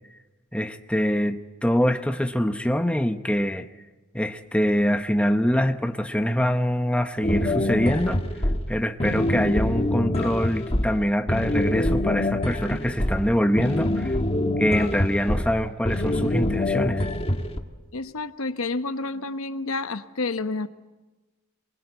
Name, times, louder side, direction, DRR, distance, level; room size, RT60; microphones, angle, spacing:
voice 1, 0.5-3.7 4.1-14.2 14.6-17.1, equal, 5° left, 8 dB, 0.8 m, -24 dB
sound 1, 7.2-17.6, left 1 dB, 25° left, 1.4 m, -25 dB
voice 2, 17.9-20.7, left 3 dB, 80° left, 11 dB, 1.0 m, -29 dB
24.0 x 21.5 x 8.1 m, 1.2 s
head